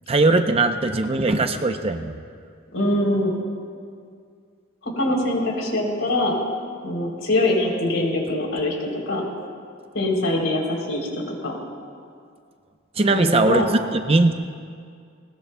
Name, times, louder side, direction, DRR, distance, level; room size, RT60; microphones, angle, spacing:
voice 1, 0.1-2.1 13.0-14.3, right 2 dB, 30° right, 7 dB, 0.6 m, -20 dB
voice 2, 2.7-3.3 4.8-6.4 6.8-9.2 9.9-11.6 13.1-13.7, left 1 dB, 75° left, -1 dB, 3.4 m, -23 dB
20.5 x 19.0 x 2.3 m, 2.2 s
head